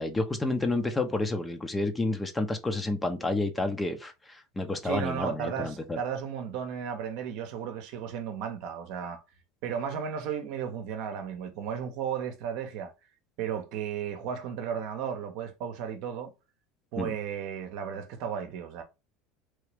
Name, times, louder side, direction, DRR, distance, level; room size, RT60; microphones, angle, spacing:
voice 1, 0.0-6.0 17.0-17.2, left 2 dB, 15° left, 0.8 m, -30 dB
voice 2, 4.8-9.2 9.6-12.9 13.4-16.3 16.9-18.8, right 8 dB, 65° right, 0.8 m, -34 dB
3.2 x 2.8 x 3.3 m
hypercardioid pair, 80°, 0 cm